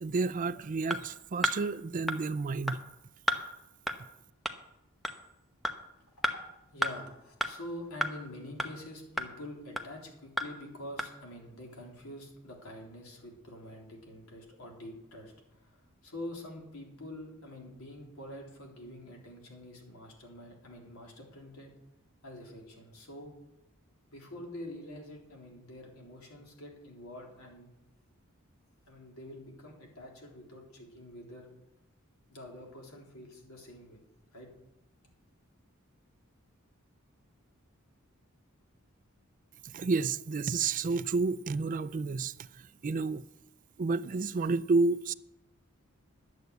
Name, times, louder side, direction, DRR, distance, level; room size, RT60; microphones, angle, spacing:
voice 1, 0.0-2.8 39.7-42.5 42.8-43.2 43.8-45.1, right 4 dB, 40° right, 0.4 m, -30 dB
sound 1, 0.9-1.0 1.4-1.6 2.1-2.2 2.7-2.8 3.3-3.4 3.9-4.0 4.5-4.6 5.0-5.2 5.6-5.8 6.2-6.3 6.8-6.9 7.4-7.5 8.0-8.1 8.6-8.7 9.2-9.3 9.8-9.9 10.4-10.5 11.0-11.1, equal, ahead, 0.9 m, -30 dB
voice 2, 6.2-21.7 22.2-23.3 24.1-27.7 28.9-31.5 32.3-34.0 34.3-34.5, left 1 dB, 85° left, 3.8 m, -46 dB
11.5 x 7.9 x 8.2 m
head